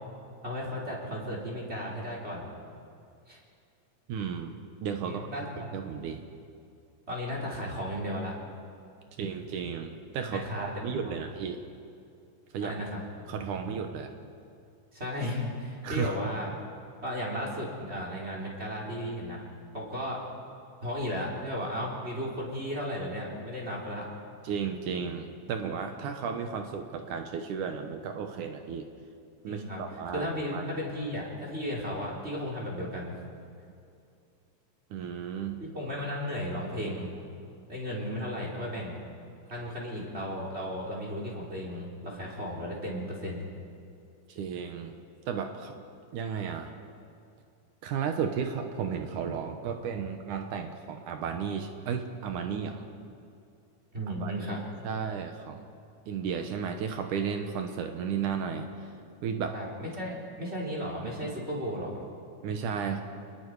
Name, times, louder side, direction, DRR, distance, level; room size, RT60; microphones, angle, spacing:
voice 1, 0.4-2.5 3.3-3.4 5.0-5.8 7.1-8.3 10.3-11.1 12.6-13.0 14.9-16.5 17.0-19.4 19.7-20.2 20.8-24.1 29.5-29.8 30.1-33.2 35.6-37.1 37.7-39.0 39.5-43.5 53.9-54.6 59.5-62.0, equal, 20° right, -3 dB, 3.9 m, -35 dB
voice 2, 4.1-4.5 4.8-5.5 5.7-6.2 9.2-11.6 12.5-12.8 13.3-14.1 15.8-16.2 24.4-28.9 29.4-30.6 34.9-35.6 44.3-44.9 45.3-45.8 46.1-46.7 47.8-52.9 54.2-55.7 56.1-58.9 59.2-59.6 62.4-63.0, right 6 dB, 75° right, 5 dB, 2.6 m, -34 dB
28.0 x 20.5 x 4.8 m, 2.4 s
omnidirectional pair, 3.7 m